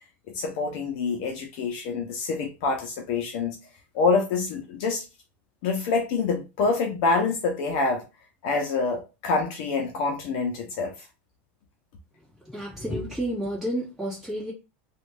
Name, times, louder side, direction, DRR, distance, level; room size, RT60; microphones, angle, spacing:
voice 1, 0.3-3.6 3.9-5.0 5.6-8.0 8.4-10.9, left 4 dB, 45° left, 3 dB, 0.6 m, -26 dB
voice 2, 12.4-14.5, equal, 5° right, -7 dB, 1.6 m, -30 dB
3.0 x 2.3 x 3.3 m, 0.28 s
supercardioid pair, 180°, 7 cm